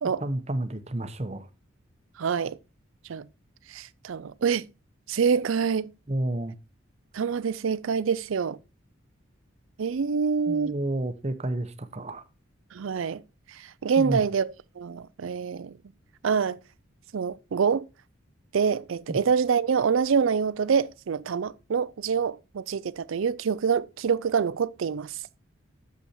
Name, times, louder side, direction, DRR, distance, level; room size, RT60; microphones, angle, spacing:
voice 1, 0.2-1.4 6.1-6.5 10.5-12.2 14.0-14.2 19.1-19.2, right 1 dB, 30° right, 0.8 m, -30 dB
voice 2, 2.2-2.6 3.1-3.3 3.7-4.7 5.1-5.9 7.1-8.6 9.8-10.8 12.7-13.2 13.5-15.7 16.2-16.6 17.1-17.9 18.5-25.2, right 6 dB, 80° right, 0.4 m, -26 dB
8.3 x 7.0 x 4.3 m
head